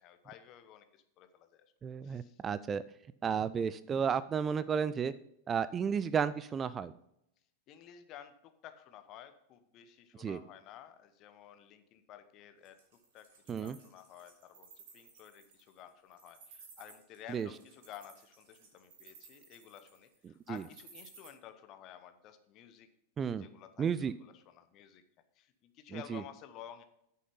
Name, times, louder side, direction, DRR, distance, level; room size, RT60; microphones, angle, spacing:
voice 1, 0.0-1.6 2.0-2.4 6.0-6.1 7.7-12.8 13.1-22.9 23.2-25.0 25.3-26.8, left 10 dB, 35° left, 9 dB, 1.0 m, -53 dB
voice 2, 1.8-2.8 3.2-5.1 5.5-6.9 10.2-10.4 13.5-13.8 17.3-17.5 20.5-20.6 23.2-23.4 23.8-24.1 25.9-26.2, right 7 dB, 20° right, 16 dB, 0.3 m, -32 dB
Wild animals, 12.6-21.3, right 5 dB, 50° right, 3.3 m, -57 dB
9.3 x 6.6 x 5.4 m, 0.78 s
figure-of-eight pair, 90°, 0 cm